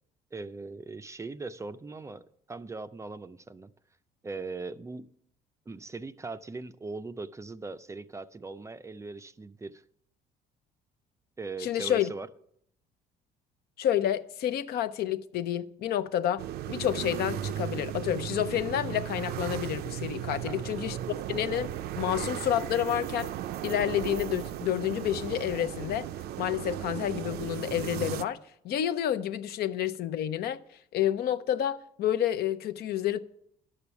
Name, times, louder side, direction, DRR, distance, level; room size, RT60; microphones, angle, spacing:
voice 1, 0.3-3.7 4.2-5.1 5.7-9.8 11.4-12.3 20.3-20.6, right 3 dB, 15° right, 0.4 m, -40 dB
voice 2, 11.6-12.1 13.8-21.7 22.0-23.3 23.6-26.1 26.4-28.4 28.6-30.6 30.9-33.2, left 11 dB, 70° left, 0.7 m, -29 dB
sound 1, 16.4-28.2, right 11 dB, 70° right, 0.5 m, -36 dB
11.5 x 6.8 x 7.0 m
cardioid pair, 110°, 17 cm